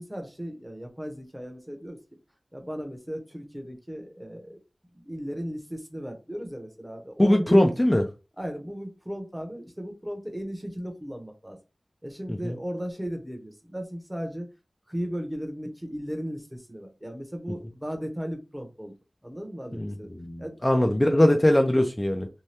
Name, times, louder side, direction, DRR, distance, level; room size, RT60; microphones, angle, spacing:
voice 1, 0.0-2.0 2.5-4.6 4.9-7.8 8.4-11.6 12.0-14.5 14.9-18.9 19.2-20.1 20.4-21.0, equal, 10° right, 0.8 m, -36 dB
voice 2, 7.2-8.0 19.8-22.3, left 1 dB, 20° left, 0.4 m, -21 dB
2.7 x 2.2 x 3.3 m
wide cardioid pair, 55°, 0 cm